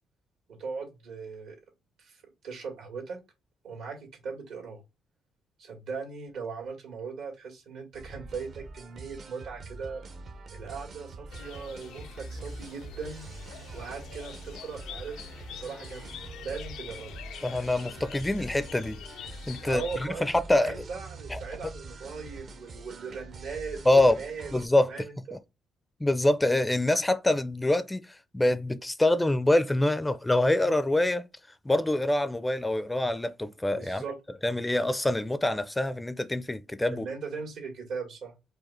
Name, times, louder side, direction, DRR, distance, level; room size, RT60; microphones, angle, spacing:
voice 1, 0.6-1.6 2.0-2.2 2.4-3.2 3.6-4.8 5.6-10.0 10.5-13.2 13.7-17.1 19.6-23.8 24.2-24.5 24.9-25.4 33.7-34.2 34.4-34.8 36.9-38.3, right 5 dB, 80° right, 2.2 m, -39 dB
sound 1, 7.9-24.7, right 3 dB, 55° right, 0.7 m, -44 dB
sound 2, 11.3-20.1, left 10 dB, 85° left, 0.4 m, -46 dB
voice 2, 17.4-19.0 19.5-20.8 21.3-21.4 23.9-24.2 24.5-24.9 26.0-31.3 31.6-34.0 34.4-37.1, left 1 dB, 10° left, 0.4 m, -25 dB
4.9 x 2.5 x 4.2 m
cardioid pair, 90°, 0 cm